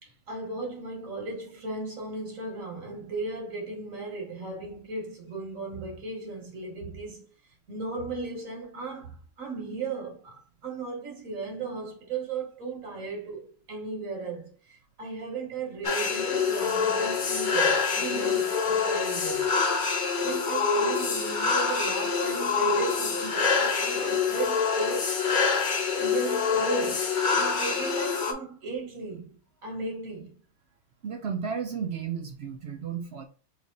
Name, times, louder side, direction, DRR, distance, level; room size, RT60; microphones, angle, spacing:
voice 1, 0.0-7.3 7.7-10.3 10.6-19.5 20.2-25.1 26.0-27.1 27.3-30.3, right 3 dB, 80° right, 1.7 m, -36 dB
sound 1, 15.8-28.3, left 5 dB, 45° left, 0.8 m, -26 dB
voice 2, 31.0-33.3, right 6 dB, 60° right, 0.8 m, -33 dB
3.4 x 3.1 x 3.8 m
omnidirectional pair, 1.4 m